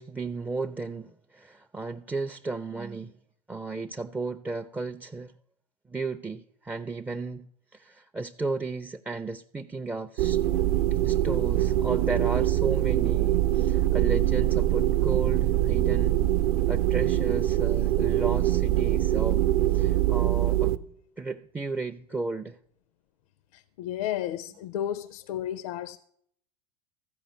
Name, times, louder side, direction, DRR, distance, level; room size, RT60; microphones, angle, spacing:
voice 1, 0.0-3.1 3.5-5.3 5.9-7.5 7.7-10.4 11.0-16.2 16.7-19.4 19.7-20.7 21.2-22.6, right 3 dB, 10° right, 0.4 m, -34 dB
sound 1, 10.2-20.8, right 14 dB, 65° right, 0.7 m, -23 dB
voice 2, 23.5-26.0, left 11 dB, 65° left, 0.5 m, -33 dB
14.0 x 5.1 x 8.1 m
hypercardioid pair, 90°, 20 cm